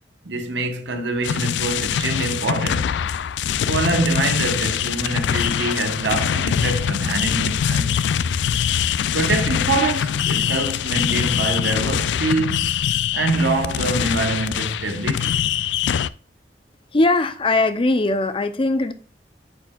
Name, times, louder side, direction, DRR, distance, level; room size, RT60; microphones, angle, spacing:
voice 1, 0.2-2.9 3.7-8.0 9.1-12.8 13.1-15.5, right 2 dB, 85° right, 1.1 m, -25 dB
sound 1, 1.2-16.1, left 8 dB, 80° left, 0.3 m, -23 dB
voice 2, 16.9-18.9, left 2 dB, 30° left, 0.6 m, -20 dB
9.8 x 4.4 x 2.4 m
head